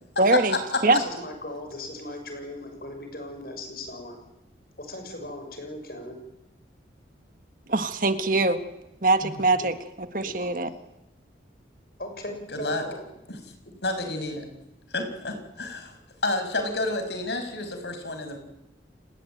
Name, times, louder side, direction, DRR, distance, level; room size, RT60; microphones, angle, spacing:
voice 1, 0.2-0.6 0.8-1.0 7.7-8.6 9.0-10.7, right 2 dB, 45° right, 9 dB, 1.7 m, -23 dB
voice 2, 0.8-4.2 4.8-6.2 10.2-10.8 12.0-13.0, left 1 dB, 55° left, 5 dB, 6.7 m, -38 dB
voice 3, 12.5-12.8 13.3-13.4 13.8-14.5 14.9-16.0 16.2-18.4, left 2 dB, 70° left, 7 dB, 5.9 m, -29 dB
30.0 x 19.0 x 9.2 m, 0.92 s
head